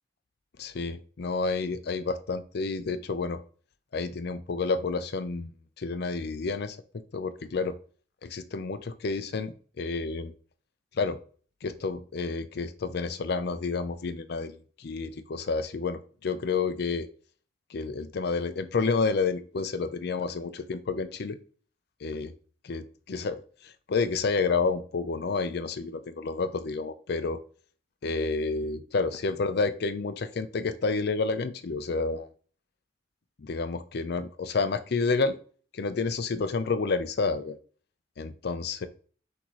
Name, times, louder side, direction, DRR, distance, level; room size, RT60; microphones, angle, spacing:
voice 1, 0.6-3.4 3.9-5.5 5.8-6.8 7.1-7.7 8.2-10.3 10.9-11.2 11.6-17.1 17.7-21.4 22.0-22.3 22.7-22.8 23.1-27.4 28.0-32.3 33.4-35.4 35.7-37.6 38.2-38.9, left 4 dB, 60° left, 11 dB, 0.5 m, -30 dB
6.1 x 2.8 x 3.0 m, 0.41 s
head